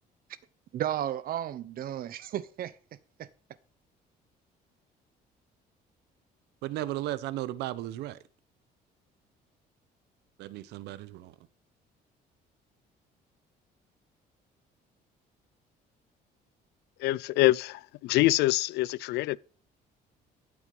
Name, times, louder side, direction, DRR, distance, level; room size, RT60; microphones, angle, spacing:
voice 1, 0.7-2.7 3.2-3.3, right 11 dB, 60° right, 0.9 m, -33 dB
voice 2, 6.6-8.2 10.4-11.3, right 14 dB, 85° right, 0.8 m, -35 dB
voice 3, 17.0-19.4, left 17 dB, 80° left, 0.4 m, -25 dB
12.0 x 7.1 x 5.4 m
cardioid pair, 110°, 17 cm